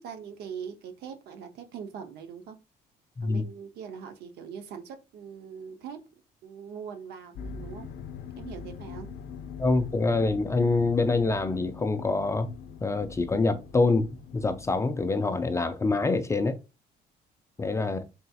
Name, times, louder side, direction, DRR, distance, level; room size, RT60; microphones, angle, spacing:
voice 1, 0.0-2.6 3.2-6.0 6.4-7.9 8.4-9.1 17.8-18.1, right 7 dB, 75° right, 0.7 m, -42 dB
sound 1, 7.4-15.1, left 6 dB, 75° left, 0.5 m, -43 dB
voice 2, 9.6-12.5 12.8-14.1 14.3-16.6 17.6-18.0, left 3 dB, 15° left, 0.3 m, -25 dB
3.9 x 2.7 x 2.3 m
cardioid pair, 110°, 17 cm